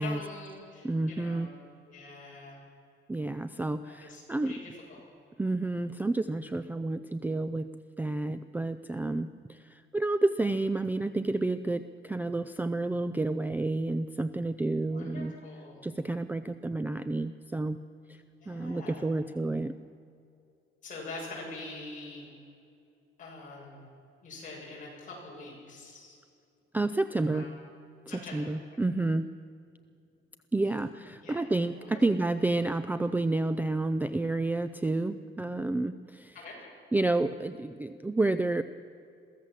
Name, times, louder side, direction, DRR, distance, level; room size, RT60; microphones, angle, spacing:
voice 1, 0.0-1.5 1.9-2.6 3.8-5.0 14.9-15.8 18.1-19.2 20.8-22.3 23.2-23.8 24.2-26.2 27.2-27.5 28.1-28.5 31.2-31.4 31.7-32.0 36.3-36.6, left 3 dB, 40° left, -4 dB, 7.4 m, -44 dB
voice 2, 0.8-1.5 3.1-4.5 5.4-7.7 8.0-15.3 15.8-17.8 18.1-18.2 18.5-19.7 26.7-27.5 28.3-29.3 30.5-36.3 36.9-38.6, right 2 dB, 10° right, 11 dB, 0.4 m, -30 dB
22.5 x 15.5 x 7.5 m, 2.5 s
cardioid pair, 180°, 21 cm